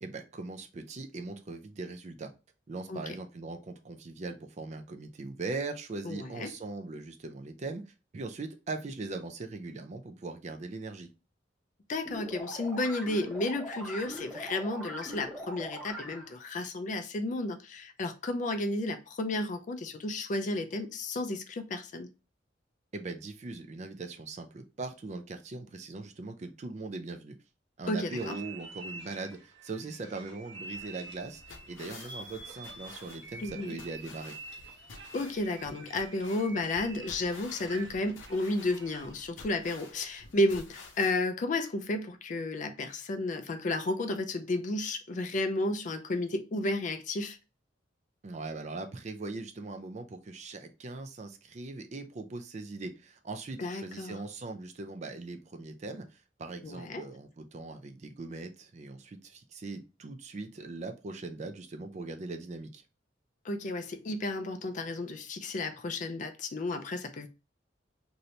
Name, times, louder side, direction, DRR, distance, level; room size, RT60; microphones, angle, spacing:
voice 1, 0.0-2.3 2.7-11.1 22.9-27.4 27.8-31.4 31.7-34.3 48.2-62.8, right 3 dB, 35° right, 0.4 m, -40 dB
voice 2, 6.0-6.5 11.9-22.1 27.9-28.4 33.4-33.8 35.1-47.4 53.6-54.2 56.6-57.0 63.4-67.3, left 2 dB, 40° left, 0.4 m, -32 dB
sound 1, 12.0-16.5, equal, 5° right, 0.8 m, -42 dB
sound 2, 28.1-39.3, right 3 dB, 60° right, 0.9 m, -48 dB
sound 3, 30.7-41.1, left 3 dB, 80° left, 0.7 m, -51 dB
3.2 x 2.6 x 2.7 m
head